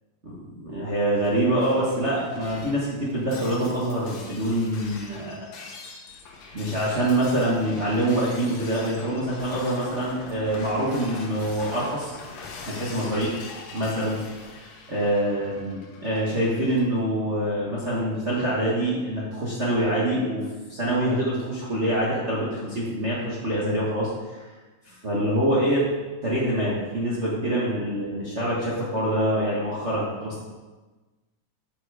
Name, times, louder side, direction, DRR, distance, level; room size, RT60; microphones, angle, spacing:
voice 1, 0.2-5.4 6.5-12.2 12.7-13.3 13.7-14.2 14.6-24.5 24.8-25.8 26.2-30.4, right 1 dB, 70° right, -7 dB, 0.6 m, -25 dB
Shatter, 1.2-16.8, left 4 dB, 65° left, 1.9 m, -42 dB
7.7 x 7.2 x 4.8 m, 1.2 s
omnidirectional pair, 3.7 m